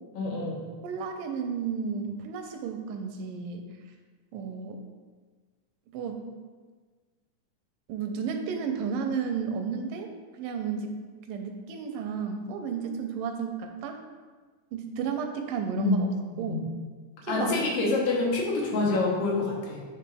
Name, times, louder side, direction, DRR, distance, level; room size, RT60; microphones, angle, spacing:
voice 1, 0.2-0.7 15.8-16.0 16.3-16.6 17.3-19.9, left 3 dB, 85° left, -2 dB, 2.8 m, -27 dB
voice 2, 0.8-3.7 4.3-4.8 5.9-6.2 7.9-11.0 11.3-14.0 14.7-16.1 16.4-16.6 17.2-17.6, right 6 dB, 85° right, 5 dB, 2.3 m, -33 dB
9.5 x 3.5 x 3.4 m, 1.4 s
omnidirectional pair, 3.7 m